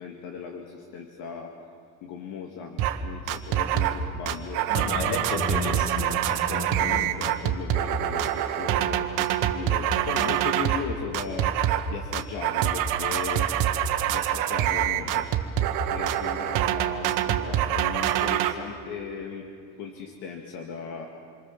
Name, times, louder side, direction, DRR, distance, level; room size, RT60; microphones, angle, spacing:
voice 1, 0.0-1.5 2.0-4.7 6.5-11.6 11.9-13.5 14.1-15.3 15.6-19.5 19.8-21.1, left 6 dB, 85° left, 2 dB, 2.4 m, -37 dB
sound 1, 2.8-3.0 3.3-4.0 4.3-10.9 11.1-11.9 12.1-18.5, right 11 dB, 85° right, 1.6 m, -25 dB
voice 2, 4.7-7.0, left 2 dB, 65° left, 1 dB, 4.8 m, -31 dB
28.0 x 24.0 x 7.5 m, 2.3 s
cardioid pair, 165°, 31 cm